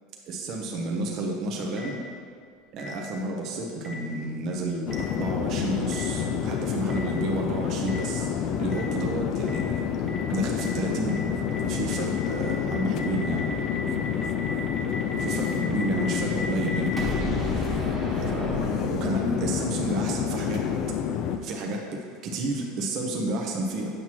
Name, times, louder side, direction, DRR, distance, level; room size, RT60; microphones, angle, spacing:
voice 1, 0.3-2.0 2.7-8.3 8.6-9.6 10.3-11.2 11.6-13.5 15.2-17.0 18.3-20.6 21.4-23.9, right 2 dB, 50° right, 0 dB, 0.9 m, -30 dB
Boom, 1.8-1.9 2.8-2.9 3.8-3.9 4.9-5.0 5.9-6.0 6.9-7.0 7.9-8.0 8.7-8.8 9.5-9.6 10.1-10.2 10.6-10.7 11.1-11.2 11.5-11.6 11.8-19.4, equal, 20° right, 1.4 m, -34 dB
sound 1, 4.9-21.4, left 8 dB, 50° left, 0.4 m, -28 dB
7.9 x 5.9 x 3.0 m, 2.1 s
supercardioid pair, 115°, 0 cm